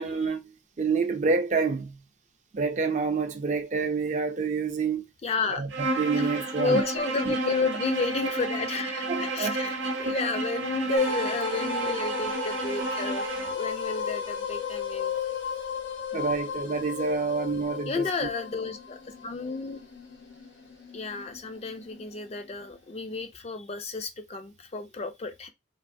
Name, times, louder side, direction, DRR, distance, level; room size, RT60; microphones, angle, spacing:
voice 1, 0.0-2.0 2.5-5.1 5.5-6.8 7.3-7.4 9.1-9.6 10.0-10.2 16.1-18.3, right 4 dB, 40° right, 0.5 m, -28 dB
voice 2, 5.2-5.6 6.2-13.3 13.5-15.1 17.9-19.8 20.9-25.5, left 4 dB, 35° left, 0.4 m, -31 dB
Bowed string instrument, 5.7-13.6, right 2 dB, 85° right, 0.6 m, -31 dB
sound 1, 11.0-22.1, left 5 dB, 90° left, 0.9 m, -34 dB
3.2 x 2.5 x 2.6 m
head